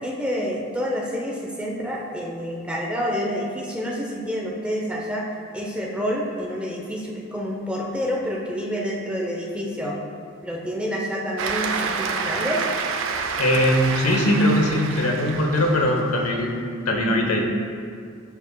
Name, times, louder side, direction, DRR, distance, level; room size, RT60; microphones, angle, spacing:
voice 1, 0.0-5.2 5.5-9.9 10.4-12.6, equal, 5° right, -2 dB, 0.6 m, -28 dB
Cheering / Applause, 11.4-16.3, right 5 dB, 65° right, 0.5 m, -28 dB
voice 2, 13.4-16.6 16.9-17.5, left 1 dB, 85° left, 1 dB, 0.9 m, -20 dB
11.5 x 4.8 x 2.2 m, 2.2 s
head